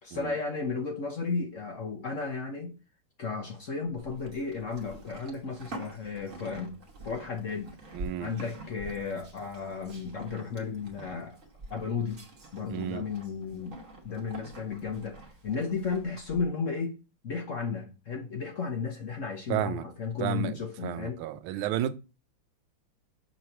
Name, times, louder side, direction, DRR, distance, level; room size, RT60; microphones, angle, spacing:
voice 1, 0.0-2.7 3.2-6.8 7.0-7.8 8.2-11.4 11.7-12.2 12.5-16.9 17.2-21.2, left 5 dB, 50° left, 1.0 m, -34 dB
Livestock farm animals working animals, 4.0-16.4, right 2 dB, 45° right, 1.5 m, -47 dB
voice 2, 7.9-8.3 12.7-13.0 19.5-19.8 20.2-21.9, right 12 dB, 85° right, 1.4 m, -32 dB
7.0 x 3.1 x 5.7 m
omnidirectional pair, 2.2 m